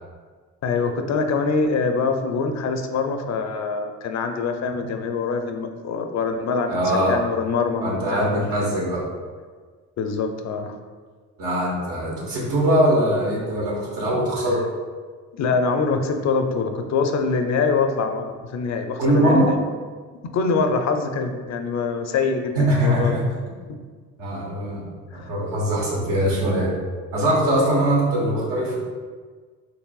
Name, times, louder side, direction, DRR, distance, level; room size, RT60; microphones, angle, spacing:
voice 1, 0.6-8.4 10.0-10.8 14.5-14.6 15.3-19.6 20.3-23.2 25.1-25.3, left 4 dB, 55° left, 5 dB, 0.5 m, -24 dB
voice 2, 6.7-7.2 7.8-9.0 11.4-14.6 19.0-19.5 22.5-23.2 24.2-24.9 25.1-26.8 27.1-28.7, right 1 dB, 90° right, -5 dB, 1.3 m, -21 dB
4.7 x 3.2 x 2.3 m, 1.5 s
cardioid pair, 80°, 33 cm